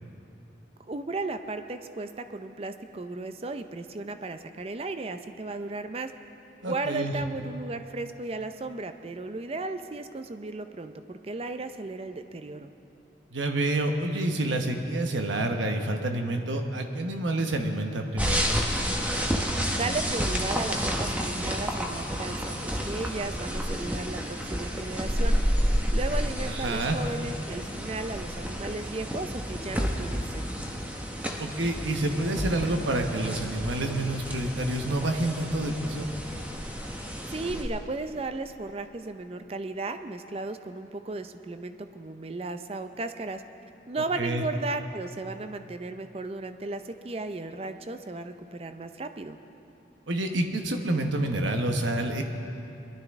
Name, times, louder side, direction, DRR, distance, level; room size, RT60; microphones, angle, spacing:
voice 1, 0.8-6.1 6.6-12.7 19.7-30.5 37.3-43.4 43.9-49.4, right 3 dB, 30° right, 9 dB, 0.5 m, -35 dB
voice 2, 6.6-7.1 13.3-18.5 26.5-27.0 31.4-36.0 44.2-44.4 50.1-52.2, right 1 dB, 90° right, 4 dB, 1.0 m, -28 dB
sound 1, 18.2-37.6, equal, 10° right, 0.9 m, -30 dB
22.0 x 12.0 x 3.6 m, 2.8 s
head